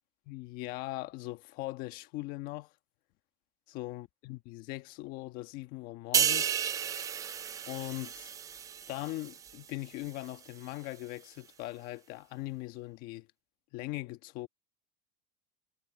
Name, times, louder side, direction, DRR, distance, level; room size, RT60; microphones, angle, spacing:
voice 1, 0.3-2.7 3.7-6.6 7.7-8.3 8.9-13.3 13.7-14.5, left 19 dB, 50° left, 1.3 m, -40 dB
sound 1, 6.1-9.7 10.0-10.3, right 8 dB, 20° right, 0.4 m, -32 dB
supercardioid pair, 150°, 19 cm